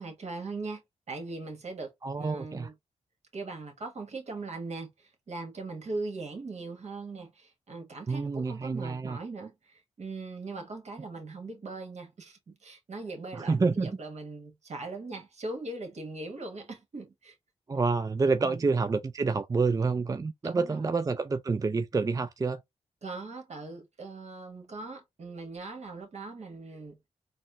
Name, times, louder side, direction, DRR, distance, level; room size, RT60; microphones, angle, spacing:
voice 1, 0.0-2.7 3.3-17.3 18.4-18.6 20.4-20.9 23.0-27.0, right 3 dB, 65° right, 1.4 m, -40 dB
voice 2, 2.0-2.7 8.1-9.2 13.3-14.0 17.7-22.6, right 4 dB, 30° right, 0.4 m, -28 dB
4.1 x 2.1 x 2.5 m
cardioid pair, 50°, 12 cm